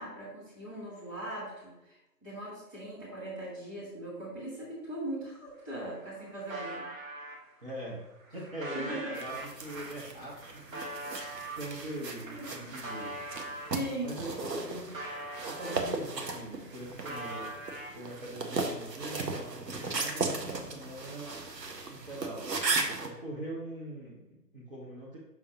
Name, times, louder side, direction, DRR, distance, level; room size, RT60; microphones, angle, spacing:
voice 1, 0.0-6.9 8.7-9.2 12.3-12.7 13.7-14.2, right 1 dB, 10° right, -10 dB, 1.6 m, -39 dB
sound 1, 5.5-5.6 5.8-7.4 8.0-13.8 14.2-16.2 16.5-18.3, right 1 dB, 55° right, 1.5 m, -43 dB
voice 2, 7.6-8.0 8.3-13.2 14.0-15.0 15.4-17.6 17.9-21.4 21.9-25.2, right 1 dB, 35° right, -6 dB, 1.2 m, -42 dB
sound 2, 9.1-23.1, right 3 dB, 75° right, 1.1 m, -37 dB
6.4 x 5.6 x 2.9 m, 0.95 s
figure-of-eight pair, 155°, 50 cm